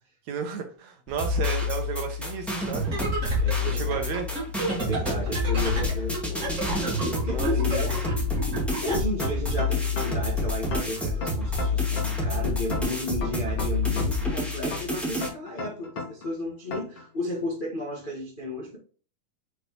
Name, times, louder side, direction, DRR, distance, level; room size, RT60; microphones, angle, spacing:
voice 1, 0.3-2.9 3.7-4.3 7.3-7.5, right 7 dB, 75° right, 1.8 m, -32 dB
sound 1, 1.1-15.3, left 3 dB, ahead, 1.0 m, -28 dB
sound 2, 2.8-9.0, right 1 dB, 30° right, 1.7 m, -32 dB
voice 2, 3.4-4.0 4.7-7.9 8.8-18.8, left 1 dB, 80° left, 0.4 m, -33 dB
sound 3, 9.2-10.3 10.7-12.3 12.7-14.3 14.7-16.3 16.7-17.0, left 3 dB, 50° left, 2.2 m, -34 dB
6.2 x 5.1 x 3.0 m
omnidirectional pair, 3.9 m